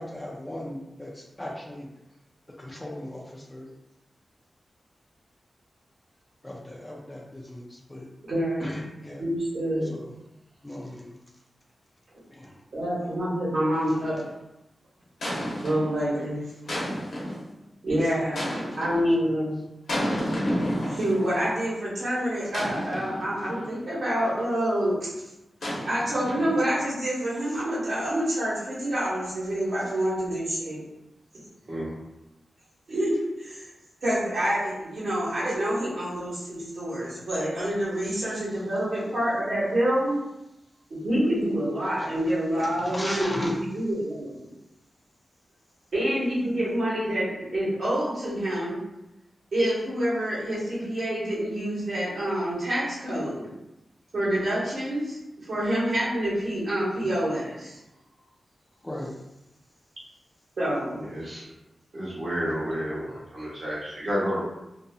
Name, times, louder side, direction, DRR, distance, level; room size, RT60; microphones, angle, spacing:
voice 1, 0.0-1.9 2.6-3.7 6.4-8.1 8.6-9.2 9.8-10.1 10.6-11.2 12.3-12.9 13.8-14.0 16.1-16.4 16.6-17.0 18.0-18.1 18.4-18.9 38.3-38.5 41.8-43.6 58.8-59.2, left 1 dB, 15° left, -1 dB, 0.4 m, -38 dB
voice 2, 8.3-8.8 9.2-10.0 12.1-12.2 12.7-14.2 15.6-16.5 17.8-18.5 18.8-19.6 20.9-25.3 25.9-30.8 32.9-33.7 34.0-40.2 40.9-43.4 43.7-44.4 45.9-48.8 49.5-53.5 54.1-57.8 60.6-61.0, equal, 70° right, -9 dB, 1.3 m, -27 dB
sound 1, 13.9-14.3 15.2-16.0 16.7-17.5 18.3-19.1 19.9-21.5 22.5-23.8 25.6-26.8, equal, 75° left, 0.8 m, -31 dB
voice 3, 61.0-61.4 61.9-64.4, equal, 50° right, -8 dB, 1.1 m, -30 dB
2.7 x 2.5 x 2.3 m, 0.92 s
wide cardioid pair, 115°, 0 cm